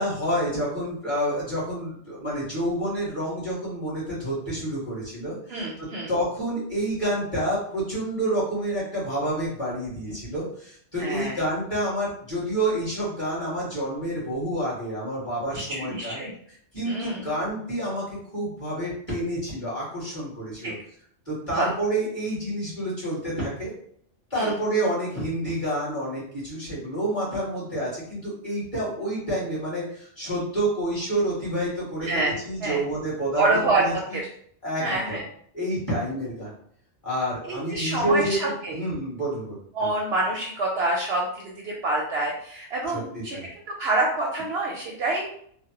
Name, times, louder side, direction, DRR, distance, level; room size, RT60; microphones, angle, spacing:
voice 1, 0.0-16.2 16.5-18.0 18.3-20.7 21.2-23.7 24.3-34.2 34.6-35.2 35.5-36.5 37.0-39.9 42.9-43.4, right 1 dB, 25° left, -8 dB, 1.7 m, -29 dB
voice 2, 5.5-6.1 11.0-11.3 15.7-16.3 16.9-17.3 20.6-20.7 21.6-21.7 24.3-24.5 32.0-32.8 33.3-34.2 34.8-35.2 37.4-38.8 39.7-41.3 41.6-43.4 43.8-45.3, right 2 dB, 65° right, -1 dB, 0.7 m, -26 dB
3.3 x 2.1 x 2.9 m, 0.62 s
omnidirectional pair, 1.3 m